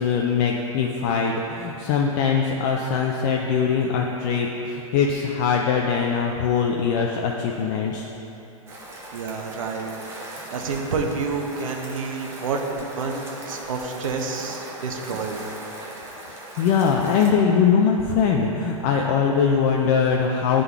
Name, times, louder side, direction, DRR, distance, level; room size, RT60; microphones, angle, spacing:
voice 1, 0.0-8.1 16.3-20.6, left 6 dB, 35° left, 0 dB, 0.4 m, -22 dB
sound 1, 8.7-17.3, right 1 dB, 15° right, 0.7 m, -38 dB
voice 2, 9.1-9.9 10.3-15.4, right 4 dB, 70° right, 3 dB, 0.8 m, -29 dB
9.5 x 3.8 x 3.5 m, 2.9 s
hypercardioid pair, 150°, 18 cm